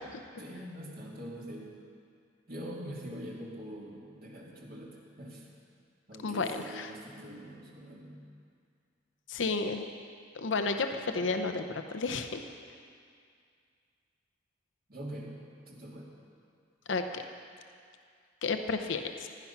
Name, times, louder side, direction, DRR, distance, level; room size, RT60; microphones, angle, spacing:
voice 1, 0.4-1.7 2.5-5.5 6.1-8.3 14.9-15.4 15.7-16.1, equal, 50° right, -4 dB, 2.7 m, -43 dB
voice 2, 6.2-6.9 9.3-9.8 10.3-12.4 16.9-17.2 18.4-19.3, left 4 dB, 75° left, 6 dB, 0.7 m, -32 dB
15.5 x 11.5 x 5.9 m, 2.3 s
head